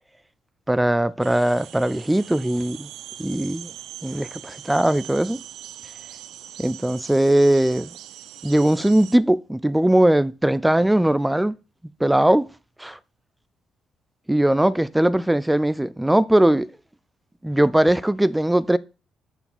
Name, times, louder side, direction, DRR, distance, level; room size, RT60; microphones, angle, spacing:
voice 1, 0.7-2.9 3.2-3.7 4.0-5.4 6.6-7.9 8.4-11.6 12.0-12.5 12.8-13.0 14.3-16.7 17.4-18.8, right 1 dB, 5° right, 0.3 m, -20 dB
sound 1, 1.2-9.2, right 12 dB, 85° right, 0.3 m, -41 dB
5.8 x 4.9 x 5.3 m
cardioid pair, 90°, 0 cm